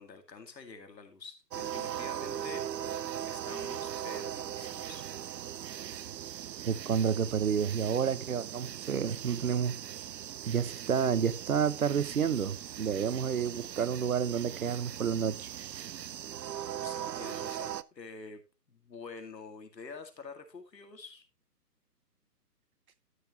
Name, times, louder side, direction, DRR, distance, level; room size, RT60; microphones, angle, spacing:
voice 1, 0.0-5.1 16.8-18.4 18.7-21.2, left 4 dB, 85° left, 2.4 m, -47 dB
sound 1, 1.5-17.8, right 10 dB, 80° right, 0.6 m, -39 dB
voice 2, 6.7-9.8 10.5-15.5, right 7 dB, 60° right, 0.9 m, -30 dB
12.5 x 6.8 x 3.0 m
hypercardioid pair, 170°, 49 cm